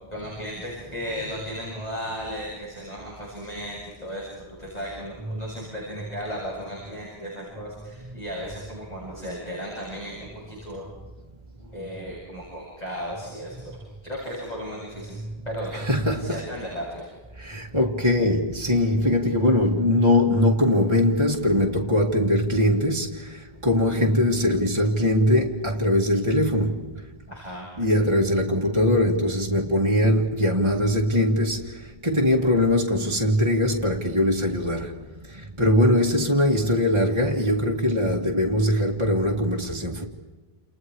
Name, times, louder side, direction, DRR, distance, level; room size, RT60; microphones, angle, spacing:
voice 1, 0.1-10.9 11.7-15.1 15.4-15.7 16.2-17.1 27.3-27.7, equal, 40° left, 8.3 m, -35 dB
voice 2, 15.7-16.4 17.4-23.3 23.6-26.8 27.8-31.7 32.0-35.0 35.6-40.0, left 1 dB, 30° right, 2.2 m, -21 dB
30.0 x 29.5 x 4.8 m
omnidirectional pair, 1.0 m